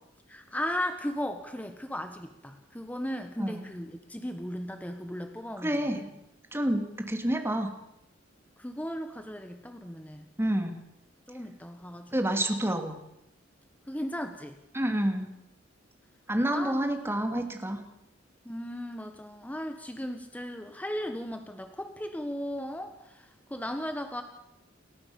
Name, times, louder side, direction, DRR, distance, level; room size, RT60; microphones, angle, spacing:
voice 1, 0.3-6.0 8.6-10.2 11.3-12.4 13.9-14.6 16.5-16.8 18.4-24.2, equal, 10° left, 6 dB, 1.4 m, -36 dB
voice 2, 5.6-6.1 6.5-7.7 10.4-10.8 12.1-13.0 14.7-15.3 16.3-17.8, right 1 dB, 15° right, 5 dB, 2.6 m, -28 dB
28.5 x 13.5 x 7.2 m, 0.85 s
head